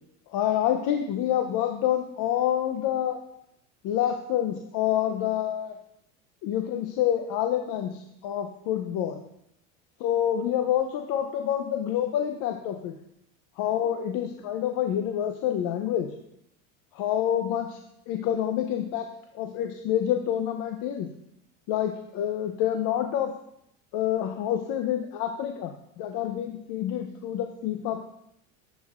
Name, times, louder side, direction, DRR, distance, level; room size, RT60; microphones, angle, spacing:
voice 1, 0.3-3.2 3.8-5.7 6.4-9.2 10.0-12.9 13.6-16.1 16.9-17.8 18.1-19.1 19.3-21.1 21.7-23.3 23.9-28.1, left 10 dB, 55° left, 5 dB, 0.7 m, -27 dB
11.0 x 5.5 x 2.5 m, 0.77 s
supercardioid pair, 115°, 38 cm